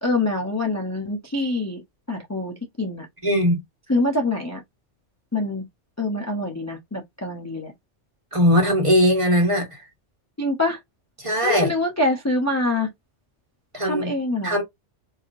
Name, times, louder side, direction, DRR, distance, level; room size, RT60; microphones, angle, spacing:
voice 1, 0.0-1.8 2.1-3.1 3.9-4.6 5.3-5.6 6.0-7.7 10.4-10.8 11.4-12.9 13.8-14.6, left 2 dB, 20° left, 0.6 m, -25 dB
voice 2, 3.2-3.6 8.3-9.8 11.2-11.7 13.7-14.1 14.4-14.6, equal, 25° right, 1.5 m, -19 dB
3.9 x 2.9 x 2.6 m
omnidirectional pair, 1.2 m